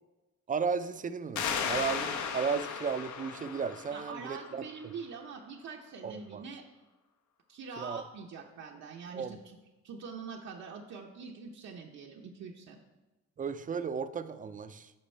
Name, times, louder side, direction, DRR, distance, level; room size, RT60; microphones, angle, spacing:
voice 1, 0.5-4.7 6.0-6.4 7.8-8.0 9.1-9.4 13.4-14.9, right 6 dB, 25° right, 12 dB, 0.4 m, -34 dB
sound 1, 1.4-4.7, left 6 dB, 70° left, 0.8 m, -36 dB
voice 2, 3.9-6.6 7.5-9.6 9.8-12.8, right 5 dB, 65° right, 0 dB, 0.8 m, -44 dB
8.7 x 5.2 x 4.3 m, 1.1 s
cardioid pair, 90°, 30 cm